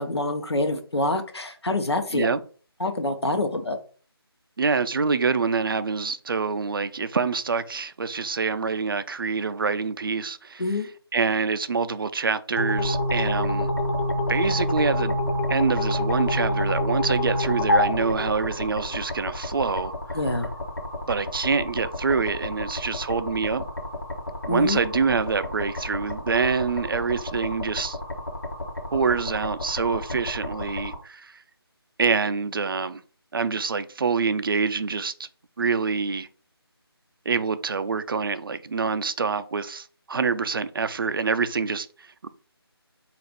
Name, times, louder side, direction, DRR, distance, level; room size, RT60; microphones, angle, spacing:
voice 1, 0.0-2.3 2.8-3.8 10.6-10.9 20.1-20.5 24.5-24.8, left 2 dB, 85° left, 0.8 m, -26 dB
voice 2, 4.6-10.8 11.1-13.7 14.3-15.2 15.5-19.9 21.1-23.6 24.4-28.0 28.9-31.4 32.0-33.0 33.3-35.3 35.6-36.3 37.3-42.3, right 5 dB, 60° right, 0.4 m, -26 dB
sound 1, 12.6-19.1, left 1 dB, 25° left, 0.5 m, -25 dB
sound 2, 12.8-30.9, left 1 dB, 60° left, 1.1 m, -34 dB
3.9 x 2.4 x 3.4 m
figure-of-eight pair, 160°, 13 cm